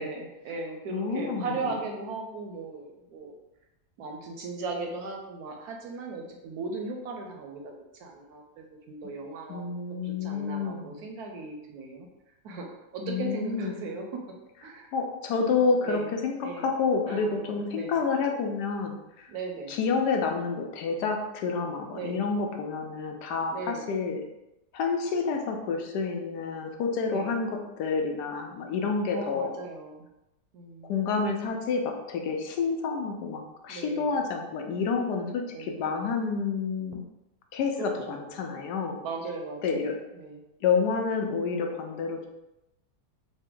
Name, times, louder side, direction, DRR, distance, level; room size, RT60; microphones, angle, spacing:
voice 1, 0.0-3.3 4.0-9.6 10.0-12.1 12.4-12.7 12.9-14.2 14.6-14.9 15.8-16.1 16.4-16.7 17.1-18.0 19.3-19.8 21.9-22.3 23.5-23.9 27.1-27.4 29.1-30.1 30.5-31.0 33.7-34.2 35.5-36.2 37.8-38.2 39.0-40.4, right 3 dB, 70° right, 2 dB, 1.0 m, -37 dB
voice 2, 0.9-1.8 9.5-11.0 13.0-13.7 14.9-19.0 19.7-24.2 24.7-27.5 27.8-29.5 30.9-37.0 37.5-39.0 39.6-39.9 40.6-42.3, left 5 dB, 75° left, 3 dB, 1.1 m, -29 dB
4.1 x 2.2 x 3.6 m, 0.93 s
omnidirectional pair, 1.8 m